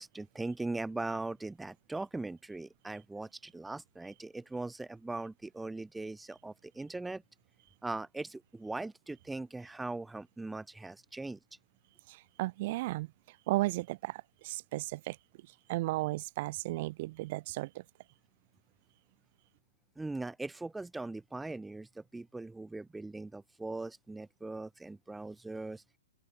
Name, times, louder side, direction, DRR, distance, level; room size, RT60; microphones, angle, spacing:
voice 1, 0.0-7.2 7.8-11.4 20.0-25.8, right 2 dB, 5° right, 2.6 m, -40 dB
voice 2, 12.1-15.2 15.7-17.8, right 19 dB, 40° right, 2.1 m, -35 dB
open air
hypercardioid pair, 155°, 0 cm